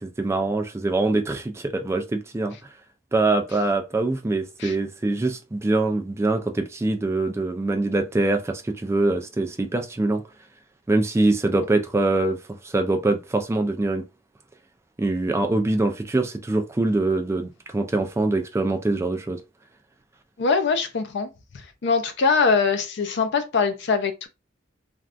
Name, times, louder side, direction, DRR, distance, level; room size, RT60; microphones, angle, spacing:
voice 1, 0.0-2.7 3.1-10.2 10.9-14.0 15.0-19.4, right 2 dB, 15° right, 0.3 m, -24 dB
voice 2, 20.4-21.3 21.8-24.3, left 5 dB, 60° left, 0.5 m, -22 dB
3.4 x 2.3 x 2.5 m
head